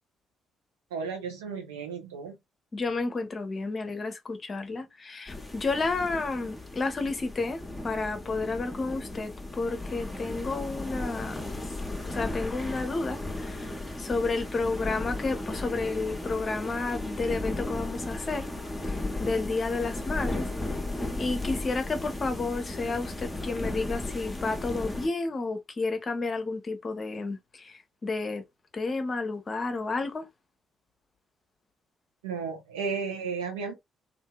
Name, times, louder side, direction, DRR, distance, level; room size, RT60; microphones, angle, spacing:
voice 1, 0.9-2.4 32.2-33.7, right 5 dB, 75° right, 0.8 m, -34 dB
voice 2, 2.7-11.5 12.1-13.7 14.0-18.5 19.2-20.4 21.2-27.7 28.0-28.4 28.7-30.3, left 3 dB, 35° left, 0.8 m, -31 dB
sound 1, 5.3-25.1, left 2 dB, 15° left, 0.9 m, -35 dB
2.7 x 2.6 x 2.3 m
figure-of-eight pair, 45°, 0 cm